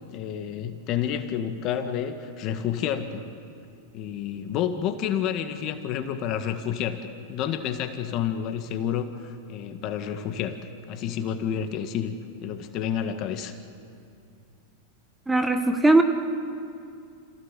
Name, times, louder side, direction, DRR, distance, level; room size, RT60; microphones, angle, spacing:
voice 1, 0.1-3.2 3.9-7.0 7.3-10.6 10.9-12.2 12.4-13.5, left 9 dB, 45° left, 7 dB, 1.8 m, -29 dB
voice 2, 15.3-16.0, right 2 dB, 5° right, 6 dB, 1.5 m, -19 dB
26.5 x 16.5 x 7.6 m, 2.4 s
hypercardioid pair, 110°, 0 cm